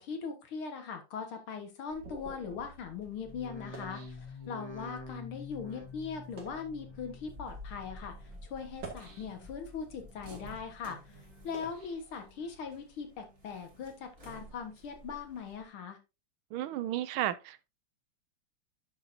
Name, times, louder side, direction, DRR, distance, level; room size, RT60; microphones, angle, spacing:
voice 1, 0.0-16.0, left 6 dB, 75° left, 2.3 m, -40 dB
sound 1, 1.1-4.9 5.5-5.7 6.2-6.7 7.5-7.7 8.6-9.7 10.2-12.7, right 4 dB, 55° right, 2.8 m, -50 dB
sound 2, 1.9-15.7, left 1 dB, 35° right, 2.4 m, -53 dB
sound 3, 3.2-8.6 8.9-9.5 9.9-10.6 11.0-11.7 12.1-12.8 13.3-13.8 14.4-14.5, left 3 dB, 20° left, 0.9 m, -49 dB
voice 2, 16.5-17.7, right 13 dB, 75° right, 1.4 m, -33 dB
10.0 x 6.6 x 2.7 m
omnidirectional pair, 2.4 m